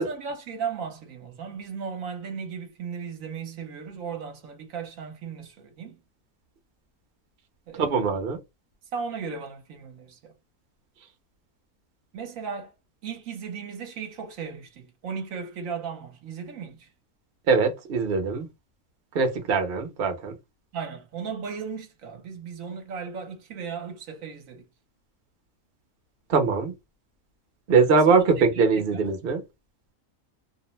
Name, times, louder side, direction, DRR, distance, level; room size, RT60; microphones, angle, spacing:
voice 1, 0.0-6.0 7.7-7.9 8.9-10.3 12.1-12.7 13.0-16.9 20.7-24.6 27.9-28.3 28.6-29.1, right 6 dB, 70° right, 1.0 m, -36 dB
voice 2, 7.7-8.4 17.5-18.5 19.1-20.3 26.3-26.7 27.7-29.4, right 4 dB, 50° right, 0.8 m, -22 dB
2.6 x 2.1 x 3.0 m
omnidirectional pair, 1.5 m